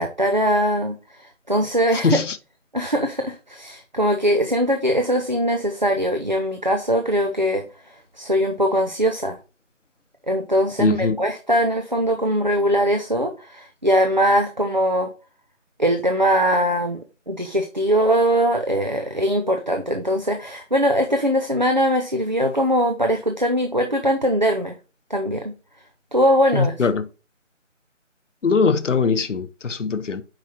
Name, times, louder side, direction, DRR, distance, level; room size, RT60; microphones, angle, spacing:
voice 1, 0.0-2.2 2.7-9.4 10.3-15.1 15.8-24.7 25.1-25.5 26.1-26.8, equal, 35° right, 0.6 m, -21 dB
voice 2, 2.0-2.4 10.8-11.2 26.5-27.0 28.4-30.2, left 5 dB, 70° left, 0.8 m, -21 dB
7.5 x 4.9 x 2.8 m
figure-of-eight pair, 170°, 38 cm